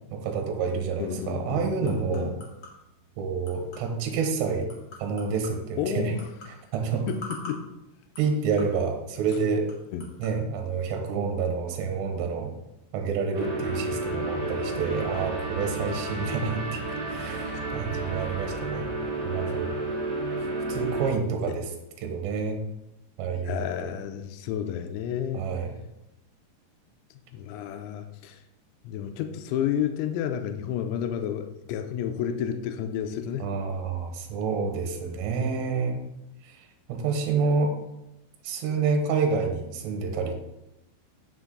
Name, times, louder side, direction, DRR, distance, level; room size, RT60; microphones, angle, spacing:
voice 1, 0.1-2.3 3.2-4.7 5.0-6.1 6.7-7.0 8.2-9.7 10.2-12.5 12.9-18.9 19.2-19.8 20.4-21.7 22.0-22.6 23.2-23.7 25.3-25.7 33.4-36.0 36.4-37.7 38.4-40.3, right 5 dB, 75° right, 4 dB, 3.2 m, -28 dB
sound 1, 0.9-10.4, left 2 dB, 45° left, 1.7 m, -48 dB
voice 2, 1.0-2.3 5.8-6.3 7.1-7.7 9.9-10.1 21.5-21.6 23.4-25.5 27.3-28.4 28.8-33.5, left 9 dB, 85° left, 7 dB, 2.9 m, -31 dB
sound 2, 13.3-21.1, right 2 dB, 35° right, 2.0 m, -31 dB
9.7 x 6.0 x 3.8 m, 0.89 s
omnidirectional pair, 5.2 m